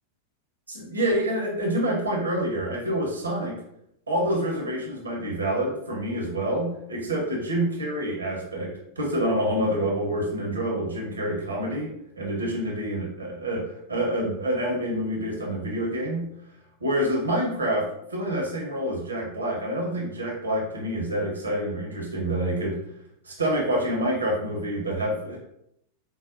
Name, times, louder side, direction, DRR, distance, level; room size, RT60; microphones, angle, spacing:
voice 1, 0.7-3.5 4.1-11.9 12.1-16.3 16.8-22.8 23.2-25.4, right 1 dB, 75° right, -2 dB, 1.1 m, -27 dB
4.9 x 2.2 x 2.6 m, 0.76 s
figure-of-eight pair, 90°, 0 cm